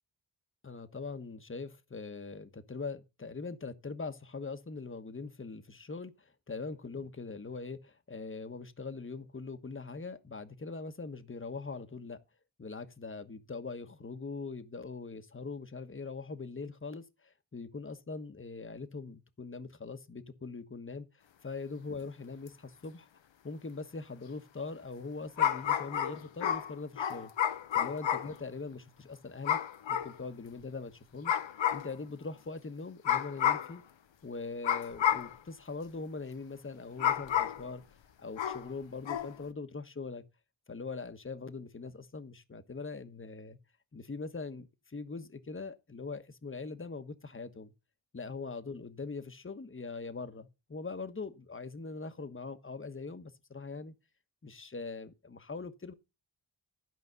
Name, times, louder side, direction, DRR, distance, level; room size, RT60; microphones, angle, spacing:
voice 1, 0.6-12.2 12.6-21.1 21.4-23.1 23.4-27.3 27.7-29.6 29.9-31.4 31.7-33.8 34.2-37.8 38.2-40.2 40.7-43.6 43.9-47.7 48.1-53.9 54.4-55.9, left 4 dB, 25° left, 1.3 m, -42 dB
sound 1, 22.5-22.6 25.4-28.4 29.4-30.1 31.2-31.9 33.0-33.7 34.6-35.4 37.0-37.7 38.4-38.7 39.0-39.3, left 10 dB, 80° left, 1.0 m, -30 dB
12.5 x 5.2 x 6.7 m
cardioid pair, 60°, 45 cm